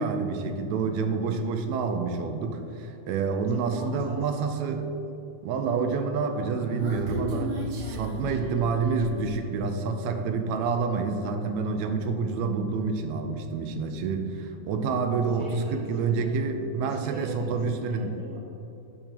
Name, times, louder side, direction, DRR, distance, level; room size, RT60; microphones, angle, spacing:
voice 1, 0.0-4.9 5.4-18.1, right 4 dB, 75° right, 6 dB, 1.7 m, -28 dB
voice 2, 3.0-4.2 15.2-16.3 16.8-18.4, right 2 dB, 45° right, -7 dB, 1.3 m, -42 dB
Human voice, 6.2-9.2, equal, 60° right, 1.7 m, -35 dB
10.5 x 7.1 x 2.9 m, 2.9 s
omnidirectional pair, 3.4 m